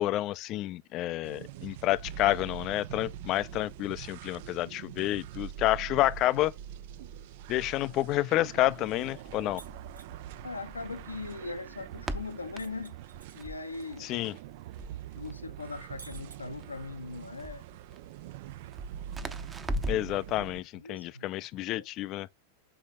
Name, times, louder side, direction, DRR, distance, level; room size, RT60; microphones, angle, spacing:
voice 1, 0.0-6.5 7.5-9.6 14.0-14.4 19.9-22.3, left 15 dB, 35° left, 0.4 m, -29 dB
sound 1, 1.2-20.6, right 11 dB, 50° right, 0.4 m, -44 dB
Crackle, 8.6-20.2, equal, 15° right, 0.8 m, -42 dB
sound 2, 9.6-10.1 12.6-13.9 14.2-14.3 16.0-16.9, right 4 dB, 80° right, 1.4 m, -52 dB
voice 2, 10.4-13.0 13.3-14.1 15.2-17.6 20.7-21.3 21.7-21.8, left 3 dB, 80° left, 0.7 m, -40 dB
6.9 x 4.1 x 3.6 m
figure-of-eight pair, 90°, 0 cm